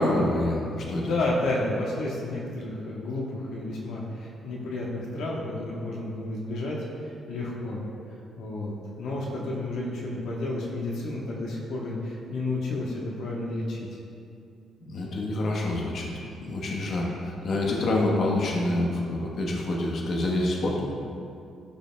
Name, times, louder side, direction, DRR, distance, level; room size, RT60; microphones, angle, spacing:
voice 1, 0.0-1.1 14.9-16.1 16.4-20.9, left 1 dB, 60° left, -2 dB, 1.1 m, -27 dB
voice 2, 1.0-6.8 7.0-7.8 8.4-13.9, left 2 dB, 80° left, -3 dB, 1.1 m, -31 dB
13.0 x 5.4 x 2.2 m, 2.5 s
cardioid pair, 90°, 0 cm